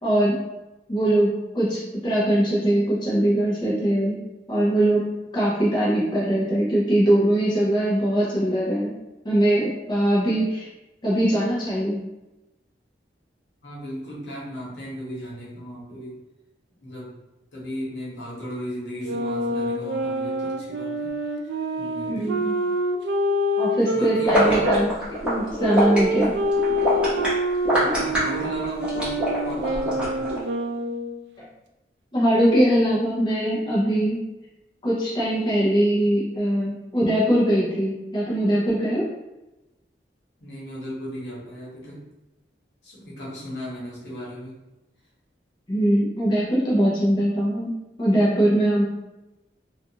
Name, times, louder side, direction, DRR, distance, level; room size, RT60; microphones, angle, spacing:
voice 1, 0.0-0.4 0.9-4.2 4.5-8.9 9.2-10.7 11.0-12.0 22.1-22.5 23.6-24.9 25.2-26.4 31.4-31.5 32.1-34.2 34.8-39.0 45.7-47.7 48.0-48.8, right 1 dB, 25° left, -7 dB, 0.6 m, -21 dB
voice 2, 13.6-16.1 16.8-17.1 17.5-21.5 21.8-22.2 23.9-24.7 27.7-30.3 40.4-42.0 42.8-44.5, equal, 80° left, -6 dB, 1.1 m, -36 dB
sound 1, 19.0-24.8 25.6-31.2, equal, 80° right, 0.3 m, -26 dB
sound 2, 24.2-30.4, equal, 5° right, 0.9 m, -24 dB
2.4 x 2.4 x 2.8 m, 0.99 s
head